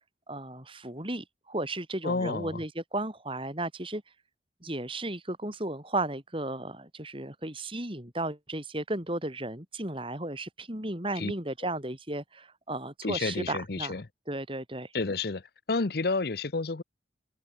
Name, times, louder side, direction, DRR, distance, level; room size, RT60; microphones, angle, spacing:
voice 1, 0.3-4.0 4.6-14.0 14.3-14.9, right 1 dB, 30° right, 4.2 m, -34 dB
voice 2, 2.0-2.6 11.2-11.3 13.0-14.0 14.9-15.4 15.7-16.8, left 3 dB, 55° left, 0.8 m, -30 dB
head